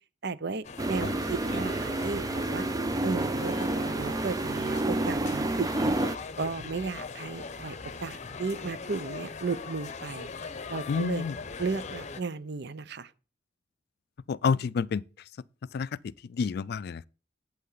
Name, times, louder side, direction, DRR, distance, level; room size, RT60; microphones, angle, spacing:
voice 1, 0.2-2.7 3.0-5.9 6.4-10.3 10.7-11.2 11.6-13.1, right 4 dB, 60° right, 0.7 m, -34 dB
sound 1, 0.6-12.2, left 4 dB, 40° left, 0.7 m, -40 dB
sound 2, 0.8-6.2, right 2 dB, 20° right, 0.4 m, -29 dB
voice 2, 10.9-11.3 14.3-15.0 15.7-15.9 16.4-17.1, left 5 dB, 55° left, 0.3 m, -28 dB
8.6 x 8.4 x 3.9 m
head